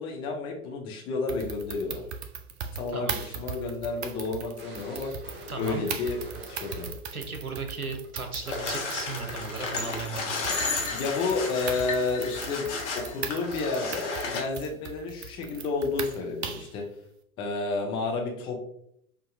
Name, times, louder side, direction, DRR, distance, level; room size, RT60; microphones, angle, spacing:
voice 1, 0.0-2.0 2.7-5.1 5.6-6.9 10.9-16.8 17.4-18.6, left 3 dB, 15° left, 1 dB, 0.4 m, -31 dB
sound 1, 1.3-16.8, right 6 dB, 50° right, 0.6 m, -39 dB
voice 2, 2.9-3.2 5.5-5.8 7.1-10.4, right 3 dB, 90° right, 5 dB, 0.8 m, -36 dB
galacticpinball borked, 3.5-7.1 7.4-7.6 8.0-8.1 8.5-10.0, right 1 dB, 25° right, 1.0 m, -45 dB
sound 2, 8.5-14.4, left 4 dB, 55° left, 1.2 m, -33 dB
5.8 x 2.6 x 2.5 m, 0.71 s
figure-of-eight pair, 95°, 42 cm